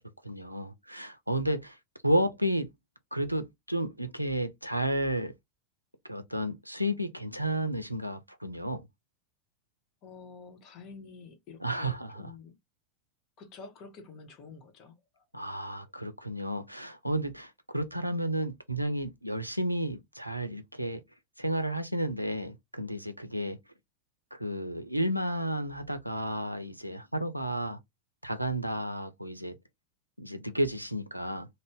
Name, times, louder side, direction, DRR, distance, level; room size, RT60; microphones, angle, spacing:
voice 1, 0.2-1.8 2.0-2.7 3.1-5.3 6.1-8.8 11.6-12.3 15.3-21.0 21.4-23.6 24.3-27.8 28.2-29.6 30.2-31.5, right 1 dB, 90° right, 0.4 m, -32 dB
voice 2, 10.0-12.6 13.4-15.2, left 4 dB, 35° left, 0.9 m, -49 dB
2.6 x 2.1 x 3.4 m
figure-of-eight pair, 90°, 0 cm